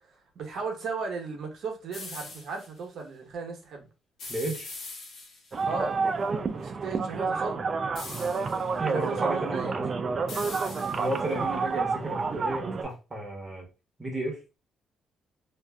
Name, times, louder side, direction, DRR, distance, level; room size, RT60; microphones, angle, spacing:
voice 1, 0.3-3.9 5.6-6.0 6.5-7.7 8.8-9.7, right 4 dB, 65° right, 0.8 m, -35 dB
sound 1, 1.9-2.7 4.2-5.6 7.9-8.7 10.3-11.3, left 3 dB, 60° left, 1.1 m, -42 dB
voice 2, 4.3-4.7 8.8-9.9 10.9-13.7 14.0-14.4, right 2 dB, 25° right, 1.0 m, -33 dB
sound 2, 5.5-12.8, right 4 dB, 45° right, 0.3 m, -29 dB
2.5 x 2.4 x 2.2 m
cardioid pair, 90°, 0 cm